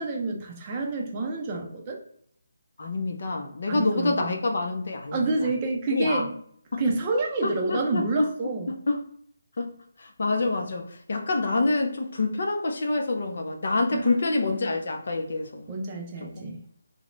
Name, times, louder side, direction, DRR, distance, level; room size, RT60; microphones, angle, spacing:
voice 1, 0.0-2.0 3.7-4.4 5.1-6.4 6.8-8.7 13.9-14.6 15.7-16.6, right 2 dB, 25° right, 1 dB, 0.4 m, -28 dB
voice 2, 2.8-5.2 5.9-6.2 6.7-6.8 7.4-8.3 8.7-9.0 9.6-9.7 10.2-15.7, left 2 dB, 60° left, 4 dB, 0.5 m, -26 dB
2.4 x 2.0 x 3.0 m, 0.64 s
figure-of-eight pair, 160°, 0 cm